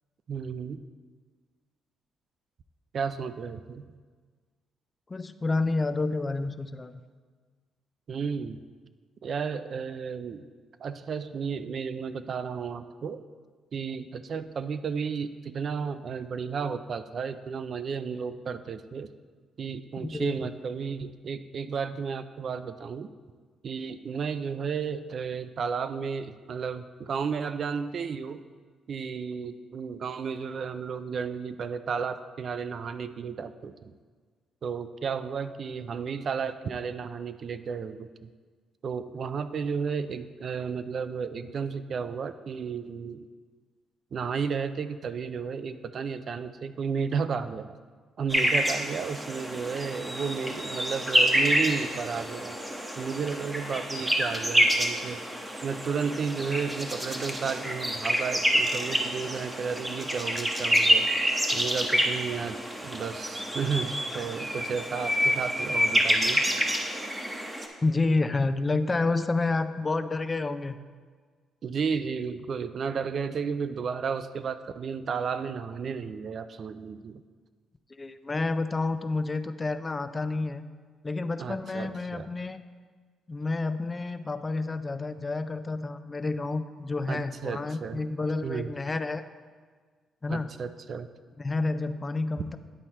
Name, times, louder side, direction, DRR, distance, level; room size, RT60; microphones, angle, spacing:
voice 1, 0.3-0.8 2.9-3.9 8.1-8.6 9.2-10.5 10.8-13.2 13.7-19.1 19.6-23.1 23.6-28.4 28.9-33.9 34.6-38.3 38.8-43.3 44.1-47.7 48.2-52.6 53.0-55.2 55.6-61.1 61.5-62.6 62.8-66.4 71.6-77.2 81.4-82.3 87.1-88.0 88.4-88.7 90.3-91.1, right 6 dB, 55° right, 11 dB, 0.4 m, -33 dB
voice 2, 5.1-7.0 20.0-20.4 67.8-70.8 77.9-80.6 81.0-82.6 83.3-89.2 90.2-90.5 91.4-92.6, left 3 dB, 25° left, 11 dB, 0.4 m, -29 dB
sound 1, 48.3-67.7, equal, 10° right, 0.9 m, -27 dB
10.0 x 4.2 x 4.4 m, 1.5 s
cardioid pair, 90°, 0 cm